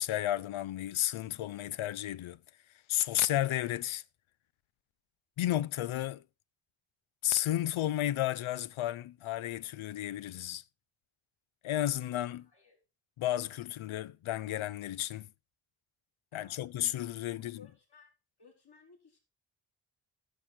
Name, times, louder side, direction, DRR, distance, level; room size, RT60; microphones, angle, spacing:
voice 1, 0.0-2.4 2.9-4.0 5.4-6.2 7.2-10.6 11.6-12.5 13.2-15.3 16.3-17.6, left 13 dB, 75° left, 0.5 m, -32 dB
voice 2, 12.3-12.8 16.3-17.0 17.3-18.1 18.4-19.2, left 5 dB, 50° left, 3.9 m, -60 dB
11.5 x 6.5 x 4.3 m
cardioid pair, 55°, 49 cm